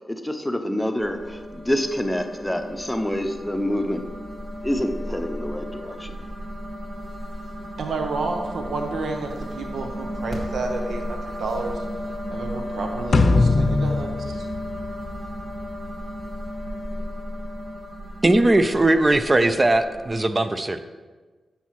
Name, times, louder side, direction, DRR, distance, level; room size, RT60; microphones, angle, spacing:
voice 1, 0.0-4.1 4.6-6.2, left 1 dB, 5° left, 5 dB, 0.8 m, -27 dB
sound 1, 1.0-20.2, equal, 50° right, 1.8 m, -34 dB
voice 2, 7.8-11.8 12.3-14.5, right 3 dB, 85° right, 3 dB, 0.8 m, -30 dB
sound 2, 13.1-15.6, left 3 dB, 55° left, 0.6 m, -21 dB
voice 3, 18.2-20.8, right 2 dB, 30° right, 10 dB, 0.5 m, -19 dB
10.0 x 7.2 x 3.1 m, 1.4 s
cardioid pair, 70°, 0 cm